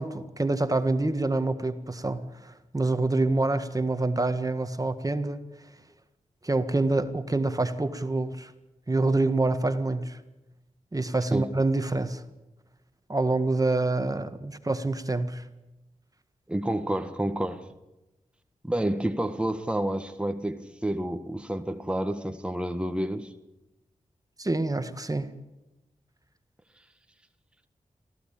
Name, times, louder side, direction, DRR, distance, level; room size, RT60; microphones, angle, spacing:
voice 1, 0.0-5.5 6.4-8.5 8.9-10.2 10.9-12.2 13.1-15.4 24.4-25.4, right 2 dB, 25° right, 10 dB, 1.6 m, -26 dB
voice 2, 16.5-17.6 18.6-23.3, right 1 dB, 10° right, 7 dB, 1.5 m, -29 dB
23.5 x 15.0 x 8.8 m, 0.99 s
cardioid pair, 50°, 13 cm